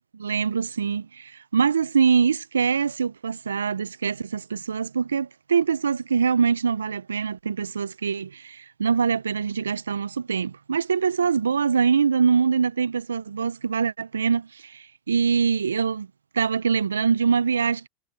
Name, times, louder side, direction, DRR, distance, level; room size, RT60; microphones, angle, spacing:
voice 1, 0.1-16.1 16.3-17.9, right 6 dB, 85° right, 0.7 m, -24 dB
hypercardioid pair, 95°, 0 cm